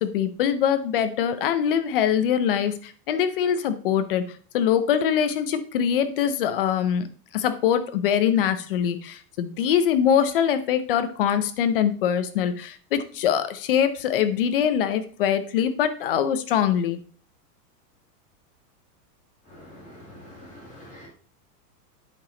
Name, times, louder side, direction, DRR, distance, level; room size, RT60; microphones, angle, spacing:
voice 1, 0.0-4.2 4.5-7.1 7.3-17.0, left 9 dB, 35° left, 10 dB, 0.6 m, -23 dB
voice 2, 19.5-21.1, left 1 dB, 15° left, -3 dB, 1.9 m, -45 dB
8.5 x 5.1 x 3.8 m, 0.43 s
supercardioid pair, 175°, 48 cm